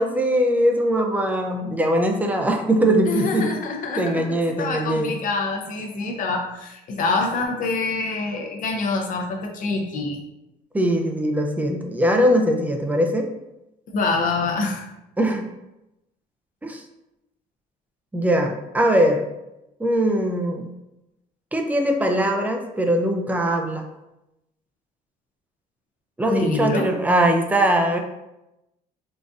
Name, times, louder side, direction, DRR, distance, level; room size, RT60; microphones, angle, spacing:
voice 1, 0.0-3.5 4.0-5.1 10.7-13.3 15.2-15.5 16.6-16.8 18.1-19.3 19.8-20.7 21.5-23.8 26.2-28.0, right 1 dB, 10° right, 3 dB, 0.4 m, -21 dB
voice 2, 3.1-10.2 13.9-14.9 26.3-26.9, left 3 dB, 50° left, 1 dB, 0.6 m, -26 dB
3.9 x 2.5 x 2.4 m, 0.93 s
cardioid pair, 110°, 17 cm